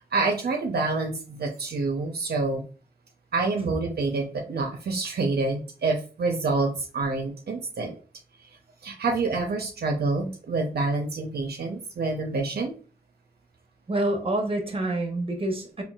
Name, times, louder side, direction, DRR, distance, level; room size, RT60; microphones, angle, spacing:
voice 1, 0.1-2.6 3.3-8.0 8.8-12.7, right 3 dB, 80° right, 2 dB, 0.5 m, -27 dB
voice 2, 13.9-15.8, right 1 dB, 35° right, 3 dB, 0.8 m, -27 dB
3.7 x 2.3 x 2.2 m, 0.37 s
cardioid pair, 55°, 16 cm